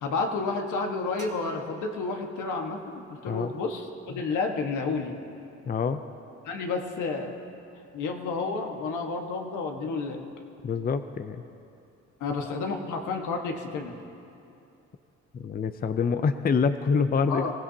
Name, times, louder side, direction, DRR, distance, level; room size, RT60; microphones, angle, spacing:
voice 1, 0.0-5.1 6.4-7.4 7.9-10.2 12.2-14.0 17.3-17.5, left 4 dB, 80° left, 2 dB, 1.5 m, -31 dB
sound 1, 1.2-2.9, right 4 dB, 50° right, 3.0 m, -48 dB
voice 2, 5.7-6.0 10.6-11.4 15.3-17.4, left 5 dB, 30° left, 9 dB, 0.6 m, -26 dB
25.0 x 15.5 x 2.8 m, 2.7 s
cardioid pair, 90°, 30 cm